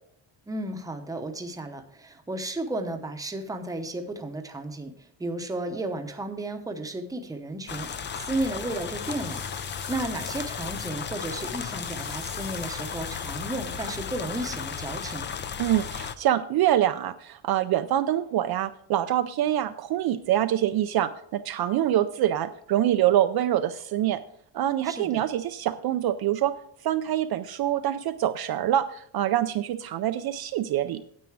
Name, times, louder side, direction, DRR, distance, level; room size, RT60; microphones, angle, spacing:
voice 1, 0.5-4.9 5.2-15.4 24.8-25.2, right 2 dB, 10° right, 5 dB, 0.8 m, -33 dB
sound 1, 7.7-16.2, left 7 dB, 25° left, 0.3 m, -35 dB
sound 2, 7.9-15.1, left 6 dB, 80° left, 2.0 m, -45 dB
voice 2, 15.6-24.2 24.5-26.5 26.8-31.0, right 12 dB, 55° right, 10 dB, 0.5 m, -25 dB
9.4 x 8.3 x 4.7 m, 0.65 s
cardioid pair, 170°, 46 cm